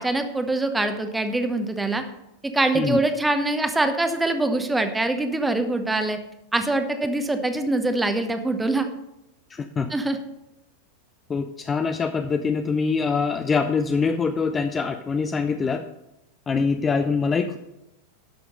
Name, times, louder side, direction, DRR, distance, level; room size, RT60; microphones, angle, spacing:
voice 1, 0.0-2.0 2.5-6.2 6.5-8.9 9.9-10.2, right 2 dB, 10° right, 8 dB, 1.0 m, -24 dB
voice 2, 9.5-9.9 11.3-15.9 16.5-17.6, left 5 dB, 20° left, 8 dB, 0.5 m, -24 dB
11.5 x 6.3 x 5.3 m, 0.89 s
figure-of-eight pair, 90°, 0 cm